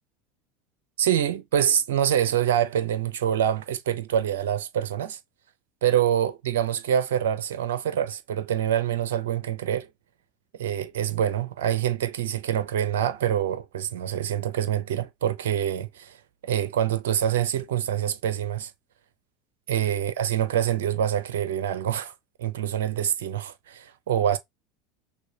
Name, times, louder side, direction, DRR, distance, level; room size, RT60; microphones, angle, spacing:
voice 1, 1.0-5.2 5.8-9.9 10.6-16.2 16.4-18.7 19.7-22.1 22.4-24.4, right 10 dB, 70° right, 0.5 m, -25 dB
6.2 x 2.2 x 2.8 m
hypercardioid pair, 75°, 0 cm